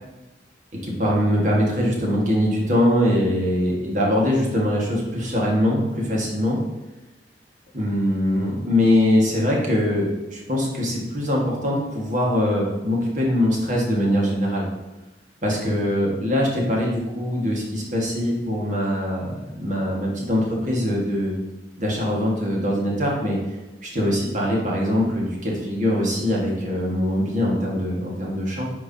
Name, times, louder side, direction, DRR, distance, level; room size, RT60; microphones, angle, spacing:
voice 1, 0.8-6.6 7.7-14.7 15.4-21.3 21.8-23.4 23.8-28.7, left 1 dB, 45° right, -3 dB, 1.7 m, -22 dB
9.2 x 4.6 x 2.8 m, 1.1 s
head